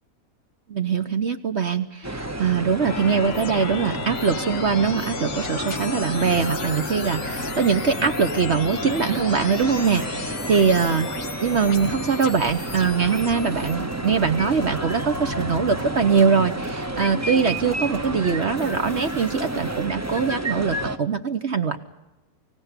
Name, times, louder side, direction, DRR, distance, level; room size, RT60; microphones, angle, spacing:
voice 1, 0.7-11.1 11.4-21.8, right 6 dB, 55° right, 9 dB, 1.2 m, -22 dB
sound 1, 2.0-21.0, right 1 dB, 15° right, 0.8 m, -31 dB
sound 2, 2.8-13.8, left 7 dB, 60° left, 1.3 m, -35 dB
sound 3, 12.4-20.4, left 4 dB, 35° left, 1.8 m, -43 dB
25.5 x 16.5 x 9.6 m, 1.1 s
omnidirectional pair, 1.5 m